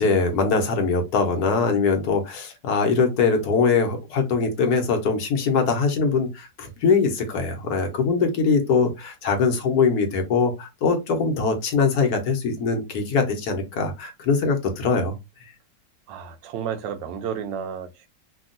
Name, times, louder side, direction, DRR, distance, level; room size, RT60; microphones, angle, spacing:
voice 1, 0.0-15.1, left 4 dB, 65° left, 1.2 m, -22 dB
voice 2, 16.1-18.1, right 8 dB, 85° right, 1.3 m, -32 dB
3.5 x 2.3 x 2.5 m
omnidirectional pair, 1.9 m